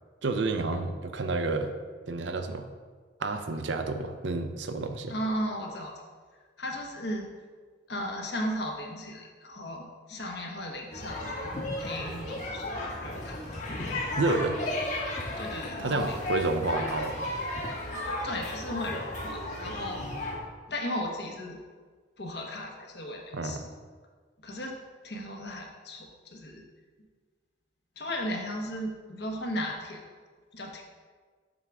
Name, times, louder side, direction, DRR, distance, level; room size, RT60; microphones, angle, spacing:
voice 1, 0.2-1.7 2.1-2.7 3.2-5.1 14.2-14.6 15.8-17.1 23.3-23.7, right 3 dB, 75° right, 7 dB, 0.6 m, -30 dB
voice 2, 5.1-6.1 6.6-7.3 7.9-11.3 11.8-13.4 15.4-16.5 18.2-20.0 20.7-21.6 22.2-23.6 24.4-24.8 25.0-26.6 28.0-30.0 30.5-30.8, equal, 60° left, 0 dB, 1.1 m, -36 dB
sound 1, 10.9-20.4, left 1 dB, 40° left, 1.3 m, -34 dB
7.6 x 3.5 x 6.1 m, 1.5 s
head